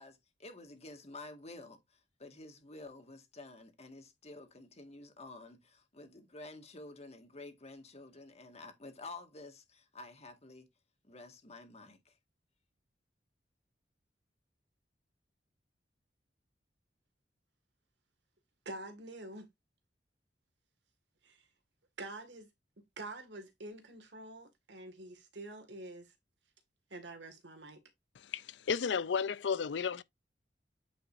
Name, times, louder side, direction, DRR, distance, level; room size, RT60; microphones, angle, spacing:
voice 1, 0.0-10.7 11.0-12.1, left 2 dB, 40° left, 1.8 m, -50 dB
voice 2, 18.7-19.5 21.2-21.5 22.0-22.5 23.0-26.1 26.9-27.8, right 2 dB, 85° right, 2.0 m, -46 dB
voice 3, 28.2-30.0, left 6 dB, 80° left, 0.5 m, -33 dB
8.8 x 5.3 x 2.6 m
head